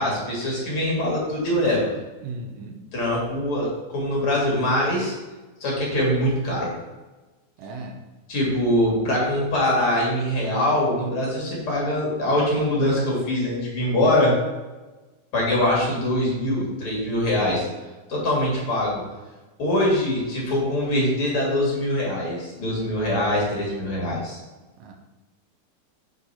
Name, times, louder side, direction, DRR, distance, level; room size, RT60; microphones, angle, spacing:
voice 1, 0.0-1.9 2.9-5.1 5.6-6.7 8.3-14.3 15.3-17.7 18.1-19.0 19.6-24.4, left 1 dB, 40° left, -4 dB, 2.4 m, -23 dB
voice 2, 2.2-2.8 7.6-8.0 24.8-24.9, right 2 dB, 80° right, 3 dB, 2.0 m, -36 dB
6.5 x 4.5 x 5.7 m, 1.2 s
omnidirectional pair, 4.6 m